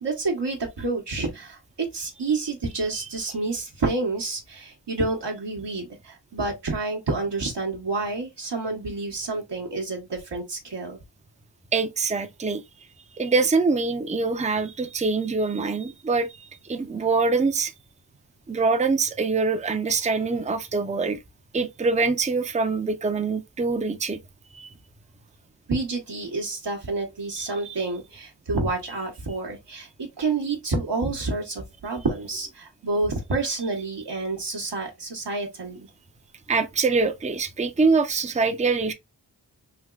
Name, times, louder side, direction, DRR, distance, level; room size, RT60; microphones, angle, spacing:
voice 1, 0.0-11.0 15.6-15.7 25.7-35.9, right 3 dB, 65° right, 1.0 m, -29 dB
voice 2, 11.7-12.6 13.2-17.7 18.5-21.2 21.5-24.2 24.5-24.7 27.4-27.9 36.5-38.9, right 4 dB, 15° right, 0.5 m, -24 dB
3.4 x 2.9 x 2.3 m
wide cardioid pair, 50°, 44 cm